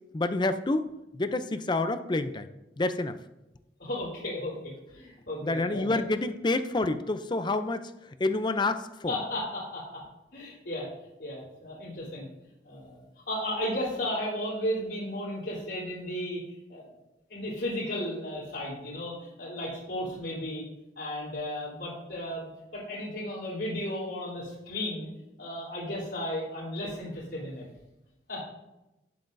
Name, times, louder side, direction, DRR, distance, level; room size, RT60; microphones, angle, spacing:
voice 1, 0.1-0.9 1.1-2.5 2.8-3.1 5.4-7.9 8.2-9.1, left 2 dB, 25° left, 10 dB, 0.5 m, -28 dB
voice 2, 3.8-5.9 9.1-10.0 10.3-10.9 11.2-12.3 12.6-16.4 16.7-16.9 17.3-20.6 21.0-25.1 25.4-27.6 28.3-28.4, left 1 dB, 85° left, -7 dB, 3.5 m, -34 dB
11.5 x 9.6 x 2.6 m, 0.95 s
head